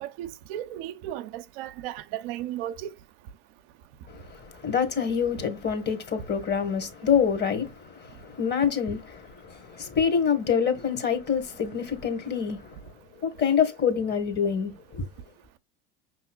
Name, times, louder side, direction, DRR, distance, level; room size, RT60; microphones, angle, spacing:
voice 1, 0.0-2.9, right 12 dB, 65° right, 0.6 m, -35 dB
voice 2, 4.1-12.7 13.2-15.1, left 7 dB, 30° left, 1.3 m, -26 dB
5.6 x 3.0 x 2.2 m
hypercardioid pair, 85°, 32 cm